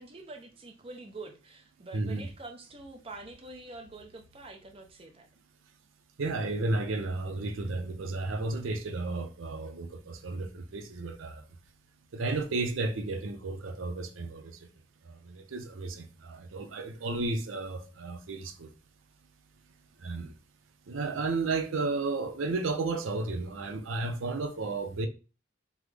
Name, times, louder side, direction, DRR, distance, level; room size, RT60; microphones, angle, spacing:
voice 1, 0.0-5.3, right 2 dB, 30° right, 0.5 m, -46 dB
voice 2, 1.9-2.3 6.2-11.4 12.1-14.5 15.3-18.7 20.0-20.3 20.9-25.1, right 3 dB, 80° right, 0.5 m, -33 dB
3.5 x 2.0 x 3.2 m
head